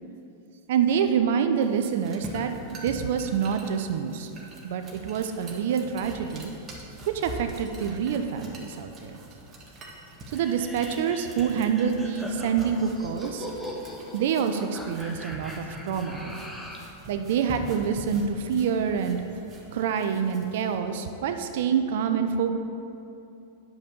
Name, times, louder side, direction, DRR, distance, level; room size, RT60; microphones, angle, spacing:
voice 1, 0.7-2.5 2.8-4.3 4.6-6.5 7.1-9.2 10.3-13.5 14.1-16.4 17.1-19.2 19.7-22.5, right 7 dB, 65° right, 7 dB, 0.6 m, -26 dB
sound 1, 1.6-20.8, right 1 dB, 30° right, 1.9 m, -44 dB
sound 2, 10.3-16.9, equal, 5° left, 1.4 m, -40 dB
9.2 x 5.3 x 6.7 m, 2.8 s
hypercardioid pair, 105°, 0 cm